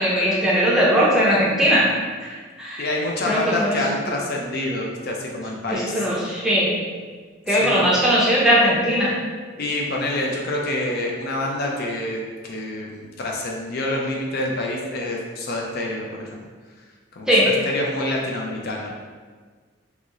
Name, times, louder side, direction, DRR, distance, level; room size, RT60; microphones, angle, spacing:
voice 1, 0.0-1.9 2.2-2.9 3.3-3.8 5.7-6.7 7.5-9.1 17.3-17.5, equal, 5° right, -7 dB, 0.6 m, -19 dB
voice 2, 2.8-6.1 7.5-7.9 9.6-16.4 17.2-18.9, left 1 dB, 50° left, -1 dB, 0.4 m, -27 dB
2.9 x 2.8 x 2.4 m, 1.5 s
head